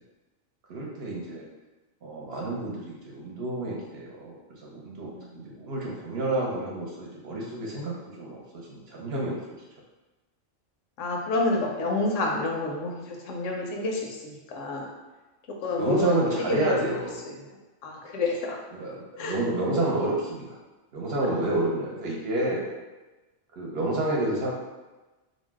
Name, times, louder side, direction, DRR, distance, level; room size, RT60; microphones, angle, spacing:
voice 1, 0.7-1.4 2.0-9.4 15.7-17.2 18.7-20.6 20.9-22.7 23.5-24.5, right 2 dB, 65° right, -3 dB, 0.8 m, -29 dB
voice 2, 11.0-14.9 15.6-16.8 17.3-18.6 19.2-19.3 21.2-21.4, left 2 dB, 85° left, 0 dB, 0.9 m, -29 dB
2.6 x 2.0 x 3.3 m, 1.2 s
omnidirectional pair, 1.2 m